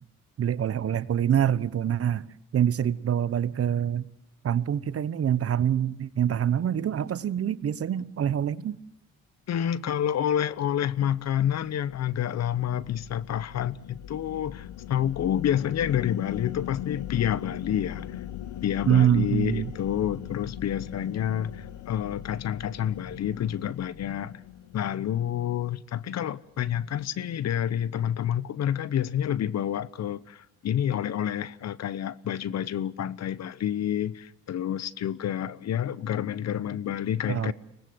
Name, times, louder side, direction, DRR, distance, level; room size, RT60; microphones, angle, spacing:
voice 1, 0.4-2.3 2.5-4.1 4.4-8.8 18.9-19.7 37.3-37.5, right 9 dB, 50° right, 1.0 m, -25 dB
voice 2, 9.5-18.2 18.6-24.4 24.7-37.5, left 10 dB, 60° left, 1.0 m, -29 dB
sound 1, 11.0-25.4, left 12 dB, 85° left, 1.1 m, -40 dB
24.5 x 19.5 x 8.0 m
cardioid pair, 90°, 30 cm